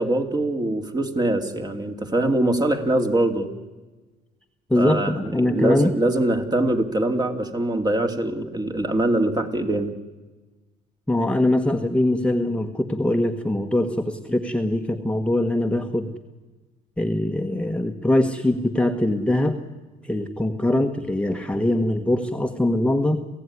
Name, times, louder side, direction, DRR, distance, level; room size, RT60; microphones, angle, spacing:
voice 1, 0.0-3.5 4.8-9.9, right 1 dB, 25° right, 5 dB, 2.8 m, -23 dB
voice 2, 4.7-5.9 11.1-16.1 17.0-19.6 20.0-23.2, left 1 dB, 5° left, 4 dB, 1.5 m, -22 dB
27.5 x 16.0 x 9.8 m, 1.2 s
cardioid pair, 110°, 17 cm